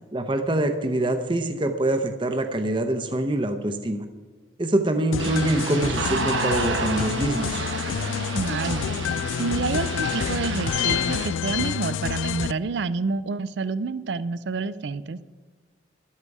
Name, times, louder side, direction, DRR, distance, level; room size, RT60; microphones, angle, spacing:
voice 1, 0.1-4.1 4.6-7.7, right 1 dB, 25° right, 7 dB, 0.7 m, -25 dB
sound 1, 5.1-12.5, left 8 dB, 85° left, 0.3 m, -28 dB
sound 2, 5.2-11.3, right 4 dB, 85° right, 1.1 m, -31 dB
voice 2, 8.3-15.2, right 4 dB, 65° right, 16 dB, 0.4 m, -28 dB
13.0 x 12.5 x 4.8 m, 1.4 s
head